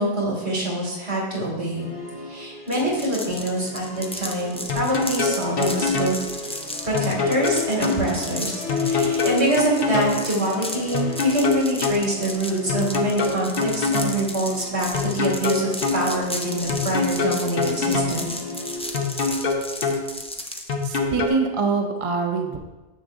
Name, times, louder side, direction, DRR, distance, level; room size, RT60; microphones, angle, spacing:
voice 1, 0.0-1.9 2.3-6.1 6.8-18.3, right 1 dB, 70° right, -4 dB, 2.6 m, -25 dB
Musical instrument, 1.7-19.4, left 4 dB, 75° left, 1.8 m, -36 dB
sound 1, 2.7-20.9, left 1 dB, 10° left, 0.4 m, -34 dB
sound 2, 4.7-6.2 6.9-8.0 8.7-10.2 10.9-12.0 12.7-14.2 14.9-16.0 16.7-18.2 18.9-20.0 20.7-21.3, left 4 dB, 55° left, 1.0 m, -24 dB
voice 2, 20.8-22.6, right 4 dB, 35° right, 3 dB, 0.6 m, -24 dB
10.0 x 7.4 x 2.6 m, 1.1 s
omnidirectional pair, 1.2 m